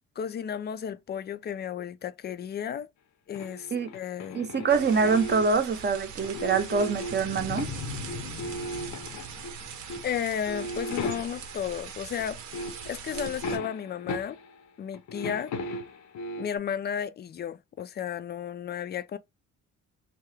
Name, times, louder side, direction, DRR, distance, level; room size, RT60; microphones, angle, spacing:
voice 1, 0.2-2.9 3.3-4.4 10.0-12.4 12.9-14.4 14.8-15.5 16.4-19.2, left 8 dB, 35° left, 0.4 m, -33 dB
sound 1, 3.3-5.7 6.2-7.8 8.1-9.6 9.9-10.1 10.5-11.6 12.2-12.3 12.5-14.6 14.9-16.6, left 1 dB, 70° left, 0.7 m, -37 dB
voice 2, 4.3-7.7, right 5 dB, 35° right, 0.7 m, -25 dB
sound 2, 4.7-13.6, right 7 dB, 75° right, 0.8 m, -41 dB
sound 3, 7.1-10.4, left 6 dB, 90° left, 0.9 m, -40 dB
2.8 x 2.3 x 3.2 m
cardioid pair, 90°, 30 cm